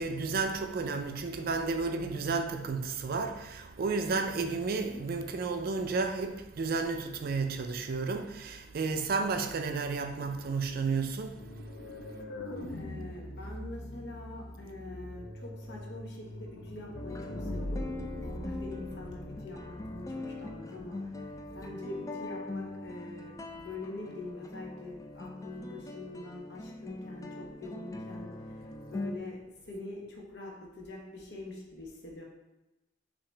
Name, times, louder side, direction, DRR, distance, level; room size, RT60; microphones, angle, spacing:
voice 1, 0.0-12.1 12.7-12.8, right 4 dB, 55° right, 0.4 m, -32 dB
sound 1, 11.3-20.1, left 1 dB, 90° left, 0.7 m, -41 dB
voice 2, 12.7-21.0 21.5-28.5 28.9-29.4 29.7-32.2, left 2 dB, 65° left, 0.9 m, -44 dB
sound 2, 16.9-29.2, left 2 dB, 15° left, 0.3 m, -42 dB
5.7 x 2.9 x 3.3 m
head